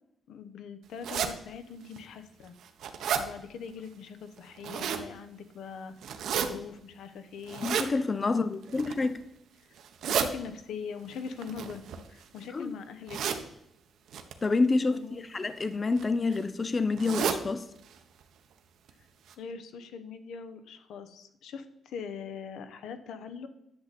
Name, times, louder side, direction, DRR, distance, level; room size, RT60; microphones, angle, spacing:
voice 1, 0.3-2.5 3.2-5.9 6.3-7.8 8.3-8.5 9.7-9.8 10.1-11.8 12.1-13.2 14.9-15.3 19.4-23.5, left 6 dB, 85° left, 0.9 m, -42 dB
sound 1, 1.0-1.3 2.0-2.1 2.5-3.2 4.4-5.1 6.0-6.5 7.5-7.9 8.6-9.1 9.8-10.3 11.4-12.4 13.1-13.4 14.1-14.3 15.3-15.6 16.0-16.1 16.3-16.4 17.0-17.4 17.8-17.9 18.2-18.3 18.9-19.0 19.3-19.4, right 8 dB, 75° right, 0.9 m, -31 dB
voice 2, 7.6-9.2 12.5-12.7 14.4-15.0 15.3-17.7, left 3 dB, 25° left, 0.4 m, -28 dB
10.5 x 7.1 x 4.1 m
wide cardioid pair, 170°, 0 cm